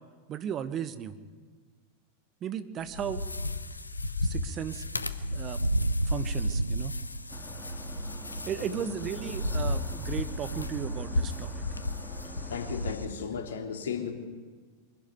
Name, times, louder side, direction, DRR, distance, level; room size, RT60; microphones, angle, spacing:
voice 1, 0.3-1.2 2.4-3.2 4.2-4.8 5.3-5.6 6.1-7.0 8.5-11.5, right 9 dB, 30° right, 11 dB, 1.2 m, -35 dB
sound 1, 2.8-13.1, left 2 dB, 80° left, 1.0 m, -35 dB
sound 2, 5.2-13.1, right 1 dB, 85° right, 0.5 m, -33 dB
sound 3, 7.3-13.0, right 1 dB, ahead, 3.5 m, -43 dB
voice 2, 12.5-14.1, left 6 dB, 65° left, 4 dB, 2.8 m, -35 dB
24.5 x 12.0 x 9.4 m, 1.5 s
figure-of-eight pair, 90°, 0 cm